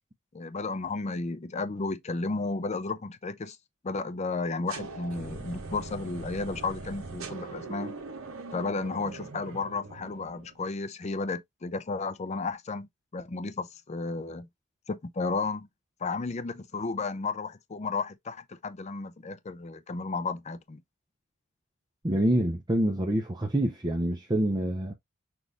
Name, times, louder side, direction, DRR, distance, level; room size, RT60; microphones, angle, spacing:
voice 1, 0.3-3.6 3.8-7.9 8.5-14.5 14.9-15.7 16.0-20.8, left 3 dB, 30° left, 0.5 m, -33 dB
sound 1, 4.7-10.6, right 3 dB, 65° right, 1.0 m, -41 dB
voice 2, 22.0-24.9, right 1 dB, 20° right, 0.6 m, -26 dB
6.1 x 2.5 x 3.3 m
head